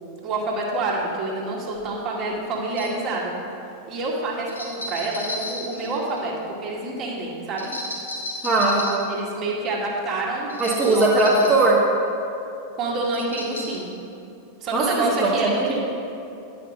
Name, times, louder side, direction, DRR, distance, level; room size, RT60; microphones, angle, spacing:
voice 1, 0.2-3.3 3.9-7.7 9.1-11.5 12.7-13.9 14.6-15.8, right 2 dB, 35° right, -4 dB, 2.0 m, -27 dB
sound 1, 1.7-1.8 2.6-3.0 4.5-6.3 7.6-9.1 10.5-11.7 13.0-13.8, left 1 dB, 80° left, 2.0 m, -34 dB
voice 2, 8.4-8.8 10.6-11.8 14.7-15.3 15.6-15.8, right 2 dB, 10° right, -7 dB, 1.5 m, -19 dB
10.0 x 5.9 x 5.2 m, 2.7 s
figure-of-eight pair, 90°, 0 cm